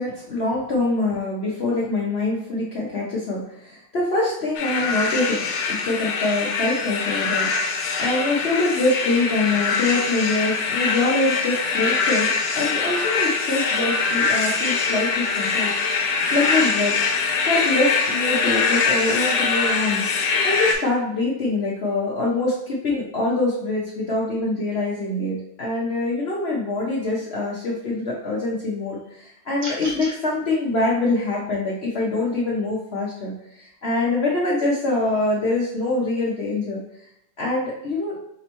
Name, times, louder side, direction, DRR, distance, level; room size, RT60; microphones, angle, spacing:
voice 1, 0.0-5.4 5.7-17.0 17.4-20.1 20.4-36.8 37.4-38.2, left 2 dB, 50° left, -5 dB, 0.8 m, -24 dB
sound 1, 4.5-20.7, left 4 dB, 85° left, 1.3 m, -23 dB
sound 2, 29.6-30.2, equal, 25° right, 0.9 m, -33 dB
5.1 x 3.2 x 2.9 m, 0.77 s
omnidirectional pair, 1.8 m